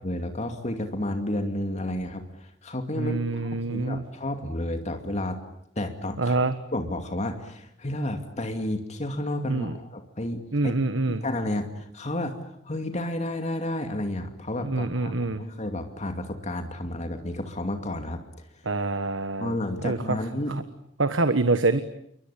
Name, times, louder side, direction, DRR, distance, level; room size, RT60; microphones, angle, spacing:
voice 1, 0.0-5.4 5.8-6.4 6.7-10.7 11.1-12.3 12.6-18.2 19.4-20.6, left 1 dB, 40° left, 6 dB, 2.6 m, -31 dB
voice 2, 3.0-4.0 6.2-6.5 9.5-9.7 10.5-11.2 14.6-15.4 18.6-19.6 19.8-20.2 21.0-21.8, right 3 dB, 80° right, 11 dB, 1.4 m, -25 dB
29.5 x 24.0 x 8.5 m, 0.72 s
head